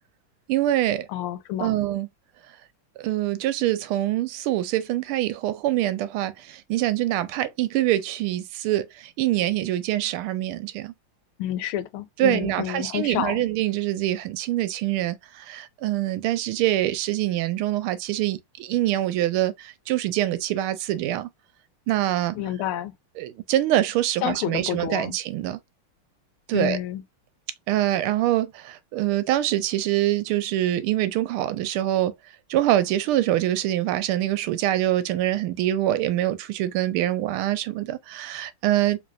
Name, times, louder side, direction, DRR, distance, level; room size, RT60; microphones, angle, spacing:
voice 1, 0.5-1.1 1.6-2.1 3.0-8.9 9.2-10.9 12.2-21.3 21.9-22.4 23.2-25.6 26.5-26.8 27.7-32.1 32.5-39.0, right 14 dB, 85° right, 1.5 m, -24 dB
voice 2, 1.1-1.7 11.4-13.4 22.3-22.9 24.2-25.2 26.5-27.0, left 12 dB, 85° left, 1.5 m, -29 dB
4.0 x 3.1 x 2.4 m
omnidirectional pair, 2.4 m